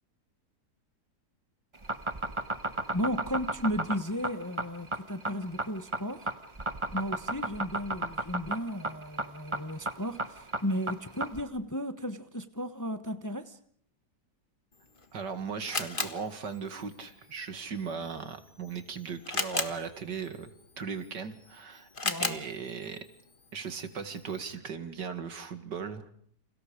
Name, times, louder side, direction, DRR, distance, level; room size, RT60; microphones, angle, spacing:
sound 1, 1.7-11.4, right 2 dB, 20° right, 1.3 m, -32 dB
voice 1, 2.9-6.3 6.9-13.6 22.0-22.4, equal, 15° left, 0.8 m, -34 dB
Camera, 14.7-24.6, left 3 dB, 30° left, 1.7 m, -39 dB
voice 2, 15.1-21.9 22.2-23.1 23.5-26.1, right 6 dB, 90° right, 2.6 m, -38 dB
29.5 x 27.5 x 5.1 m
omnidirectional pair, 1.8 m